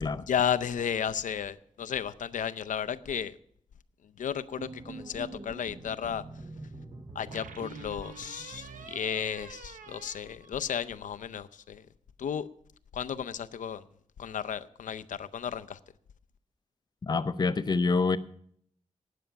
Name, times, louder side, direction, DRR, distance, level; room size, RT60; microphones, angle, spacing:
voice 1, 0.3-3.4 4.2-6.2 7.1-11.9 12.2-12.5 12.9-13.8 14.2-15.8, left 8 dB, 80° left, 13 dB, 0.6 m, -33 dB
sound 1, 4.6-8.9, right 2 dB, 25° right, 0.8 m, -46 dB
sound 2, 4.6-5.5 7.3-11.1, right 5 dB, 85° right, 0.8 m, -47 dB
voice 2, 17.0-18.2, left 4 dB, 30° left, 13 dB, 0.6 m, -26 dB
12.5 x 9.2 x 5.7 m, 0.65 s
wide cardioid pair, 150°, 13 cm